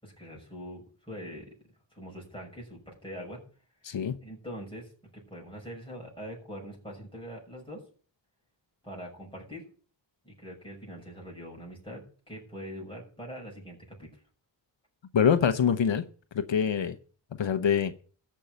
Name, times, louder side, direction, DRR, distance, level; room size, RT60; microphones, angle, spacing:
voice 1, 0.0-1.5 1.9-3.4 4.2-7.8 8.8-9.6 10.2-14.1, equal, 10° left, 6.5 m, -43 dB
voice 2, 15.1-16.0 16.3-17.0 17.4-17.9, left 7 dB, 80° left, 0.9 m, -24 dB
14.0 x 5.6 x 9.1 m
wide cardioid pair, 75°, 44 cm